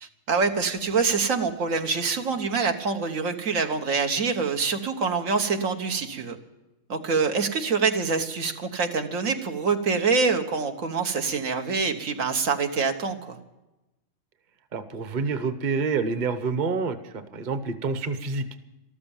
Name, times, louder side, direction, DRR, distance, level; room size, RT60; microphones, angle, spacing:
voice 1, 0.0-6.4 6.9-13.4, right 4 dB, 80° right, 5 dB, 1.7 m, -25 dB
voice 2, 14.7-18.4, right 4 dB, 40° right, 11 dB, 1.0 m, -28 dB
14.0 x 13.0 x 7.2 m, 1.0 s
omnidirectional pair, 1.4 m